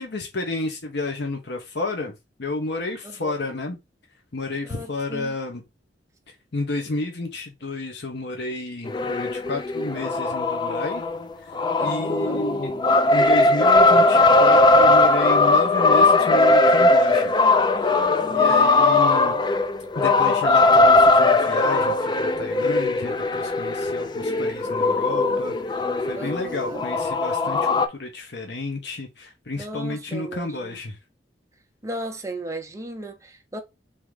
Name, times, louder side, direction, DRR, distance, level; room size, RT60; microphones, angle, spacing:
voice 1, 0.0-2.1 2.4-3.8 4.3-5.6 6.5-11.0 11.8-12.7 13.1-17.3 17.8-17.9 18.3-19.4 19.9-25.5 26.1-27.7 28.0-30.9, left 2 dB, 65° left, 0.9 m, -31 dB
voice 2, 3.0-3.5 4.6-5.3 11.8-12.5 18.2-19.0 26.2-26.9 29.5-30.8 31.8-33.6, right 1 dB, 15° right, 0.8 m, -36 dB
sound 1, 8.8-27.9, left 2 dB, 25° left, 0.4 m, -19 dB
3.7 x 2.8 x 4.7 m
head